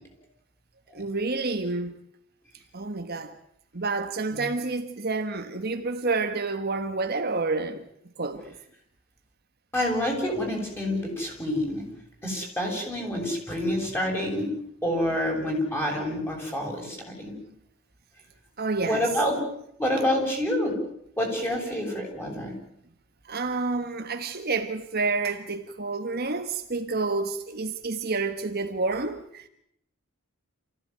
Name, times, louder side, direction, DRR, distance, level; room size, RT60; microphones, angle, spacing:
voice 1, 0.9-2.0 2.7-3.4 3.7-7.8 8.2-8.5 18.6-19.1 23.2-29.5, right 3 dB, 45° right, 1.4 m, -29 dB
voice 2, 9.7-11.8 12.2-14.5 14.8-17.3 18.8-19.4 19.8-20.7 21.2-22.5, left 1 dB, 10° left, 7.7 m, -27 dB
28.5 x 16.0 x 9.4 m
head